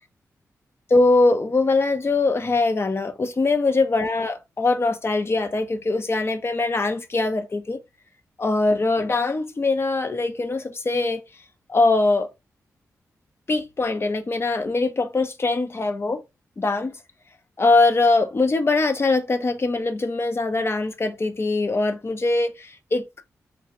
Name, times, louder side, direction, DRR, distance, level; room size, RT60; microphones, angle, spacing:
voice 1, 0.9-7.8 8.4-11.2 11.7-12.3 13.5-16.2 16.6-17.0 17.6-23.2, left 3 dB, 40° left, 0.7 m, -22 dB
3.4 x 2.4 x 2.9 m
cardioid pair, 50°, 6 cm